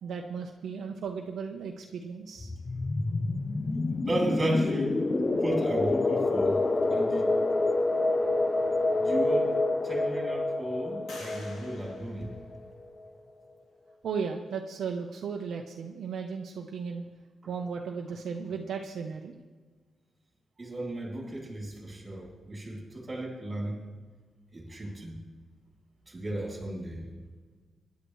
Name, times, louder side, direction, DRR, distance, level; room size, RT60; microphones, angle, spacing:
voice 1, 0.0-2.5 14.0-17.0 17.5-19.4, right 6 dB, 65° right, 2 dB, 0.9 m, -35 dB
sound 1, 2.4-12.9, left 2 dB, 20° left, 0.5 m, -28 dB
voice 2, 3.7-6.6 6.9-7.3 9.0-9.6 9.8-12.3 20.6-23.8 24.5-25.2 26.1-27.1, right 1 dB, 20° right, -1 dB, 3.1 m, -34 dB
sound 2, 8.8-8.9 9.5-10.2 11.1-13.0, left 2 dB, 75° left, 3.5 m, -50 dB
24.0 x 10.5 x 3.2 m, 1.4 s
wide cardioid pair, 170°, 0 cm